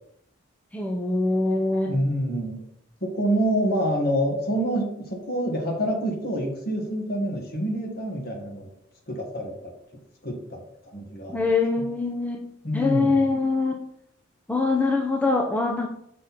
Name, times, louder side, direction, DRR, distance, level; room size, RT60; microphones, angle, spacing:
voice 1, 0.7-2.0 11.3-13.8 14.5-15.9, left 3 dB, 10° left, 0 dB, 0.6 m, -24 dB
voice 2, 1.9-2.6 3.0-8.7 9.1-9.7 10.2-11.5 12.6-13.2, equal, 50° left, 1 dB, 1.7 m, -27 dB
6.4 x 6.0 x 4.2 m, 0.74 s
head